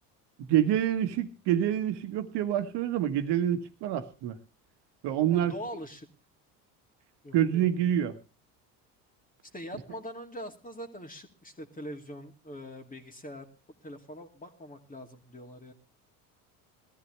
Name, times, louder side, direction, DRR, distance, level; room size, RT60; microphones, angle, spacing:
voice 1, 0.5-4.4 5.0-5.5 7.3-8.2, right 11 dB, 60° right, 8 dB, 1.6 m, -27 dB
voice 2, 5.3-6.1 7.2-7.7 9.5-13.5 13.8-15.7, equal, 15° left, 4 dB, 2.6 m, -43 dB
20.0 x 14.0 x 3.3 m, 0.32 s
hypercardioid pair, 65°, 46 cm